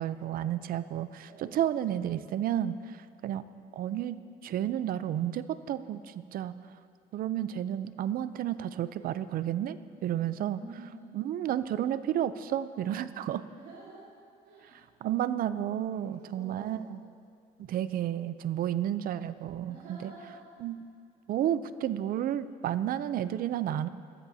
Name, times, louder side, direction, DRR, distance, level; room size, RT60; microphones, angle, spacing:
voice 1, 0.0-3.4 3.7-4.2 4.4-6.6 7.1-10.6 11.1-13.5 15.0-17.0 17.6-20.1 20.6-20.8 21.3-23.9, right 11 dB, 60° right, 14 dB, 0.6 m, -31 dB
voice 2, 10.1-11.2 13.5-14.1 14.4-14.8 15.9-16.9 19.6-20.4, right 2 dB, 85° right, -10 dB, 3.7 m, -49 dB
22.0 x 13.5 x 2.8 m, 2.2 s
cardioid pair, 110°, 17 cm